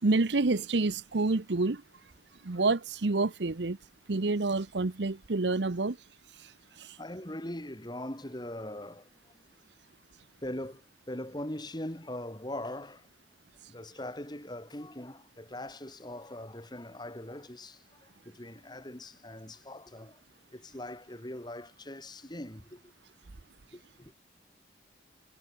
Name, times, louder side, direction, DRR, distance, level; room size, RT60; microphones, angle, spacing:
voice 1, 0.0-1.8 2.4-3.8 4.1-6.0 6.4-6.5 6.8-7.0, right 3 dB, 70° right, 0.9 m, -28 dB
voice 2, 7.0-9.4 10.4-13.1 13.7-20.2 20.5-22.9 23.7-24.1, left 1 dB, 25° left, 2.8 m, -41 dB
head